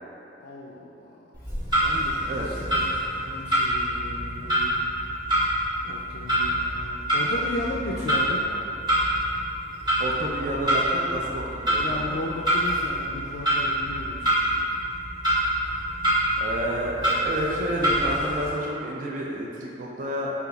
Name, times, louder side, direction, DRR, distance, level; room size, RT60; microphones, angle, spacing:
voice 1, 0.4-1.0 1.8-2.9 3.2-4.8 5.8-8.4 11.8-14.4, left 2 dB, 60° left, -3 dB, 0.3 m, -35 dB
Clock, 1.3-18.5, right 1 dB, 25° right, 1.0 m, -26 dB
voice 2, 10.0-12.2 16.4-20.3, right 1 dB, 45° right, -3 dB, 0.4 m, -30 dB
4.3 x 3.8 x 2.3 m, 2.9 s
head